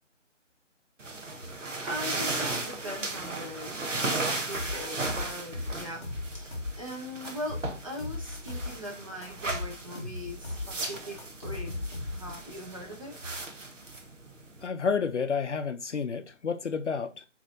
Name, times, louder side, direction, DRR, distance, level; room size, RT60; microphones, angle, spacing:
Dressing-polyester-pants, 1.0-14.7, right 2 dB, 75° right, 1.1 m, -36 dB
voice 1, 1.6-3.7 4.1-13.2, left 1 dB, 25° right, 0.7 m, -41 dB
sound 1, 4.5-6.9 7.2-8.9 9.2-12.4, left 2 dB, 20° left, 0.8 m, -37 dB
voice 2, 14.6-17.3, left 5 dB, 65° left, 0.5 m, -30 dB
6.3 x 3.2 x 2.6 m
figure-of-eight pair, 160°, 38 cm